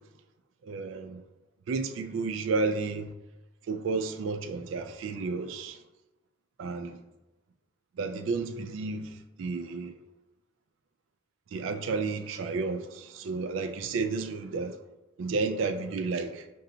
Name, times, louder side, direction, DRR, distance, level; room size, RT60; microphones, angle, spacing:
voice 1, 0.6-1.2 1.7-3.1 3.7-5.8 6.6-7.0 8.0-9.1 9.4-9.9 11.5-14.7 15.2-16.4, right 4 dB, 80° right, 0.3 m, -31 dB
5.3 x 2.7 x 2.7 m
head